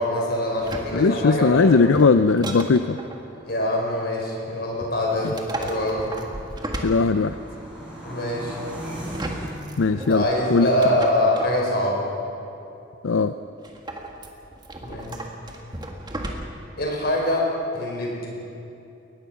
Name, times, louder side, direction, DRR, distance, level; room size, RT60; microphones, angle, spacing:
voice 1, 0.0-1.8 3.4-6.1 8.0-8.6 9.9-12.1 14.8-15.2 16.8-18.3, left 1 dB, 55° left, -2 dB, 5.4 m, -24 dB
sound 1, 0.6-3.2 4.8-7.6 8.9-11.6 13.6-16.7 17.1-17.2, right 1 dB, 20° right, 1.7 m, -35 dB
voice 2, 0.9-3.0 6.8-7.4 9.8-10.2 10.5-10.7 13.0-13.3, left 4 dB, 85° left, 10 dB, 0.5 m, -18 dB
sound 2, 2.8-9.5, right 1 dB, 5° right, 6.3 m, -40 dB
22.0 x 19.5 x 6.0 m, 2.7 s
head